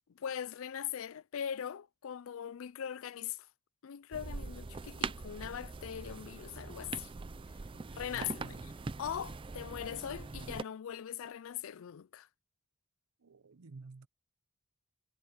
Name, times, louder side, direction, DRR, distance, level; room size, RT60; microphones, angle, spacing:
voice 1, 0.1-3.5 3.8-7.1 7.9-8.7 9.0-12.3, left 9 dB, 65° left, 0.4 m, -41 dB
sound 1, 4.1-10.6, right 4 dB, 25° right, 0.4 m, -42 dB
voice 2, 7.7-8.6 13.2-14.1, right 4 dB, 80° right, 0.7 m, -52 dB
head